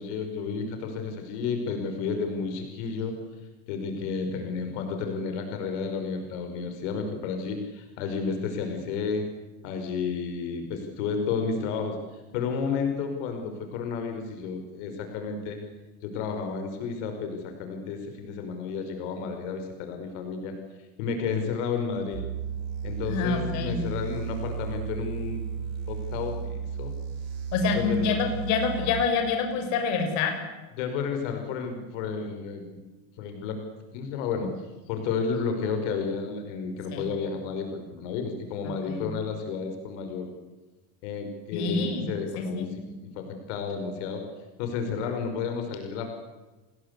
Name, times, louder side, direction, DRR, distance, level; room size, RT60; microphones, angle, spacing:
voice 1, 0.0-3.2 3.7-9.3 9.6-15.6 16.0-20.5 21.0-22.2 22.8-25.4 25.9-26.9 27.7-28.1 30.8-32.8 33.2-33.6 33.9-34.5 34.9-40.3 41.0-44.2 44.6-46.1, left 5 dB, 80° left, 6 dB, 5.5 m, -31 dB
sound 1, 22.1-29.0, right 7 dB, 65° right, 7.2 m, -34 dB
voice 2, 23.1-23.7 27.5-30.3 36.9-37.0 38.9-39.1 41.5-42.1 42.4-42.7, left 5 dB, 55° left, 4 dB, 6.3 m, -26 dB
29.5 x 21.0 x 8.3 m, 1.1 s
cardioid pair, 175°, 35 cm